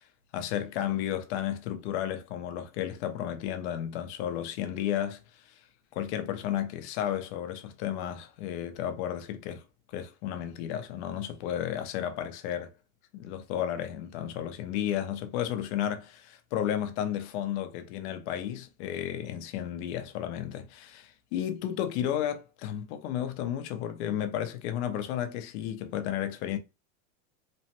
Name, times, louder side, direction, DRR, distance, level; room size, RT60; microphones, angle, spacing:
voice 1, 0.3-5.2 5.9-9.6 9.9-12.7 13.1-16.0 16.5-26.6, left 10 dB, 55° left, 0.6 m, -33 dB
3.0 x 2.1 x 2.8 m
supercardioid pair, 150°, 41 cm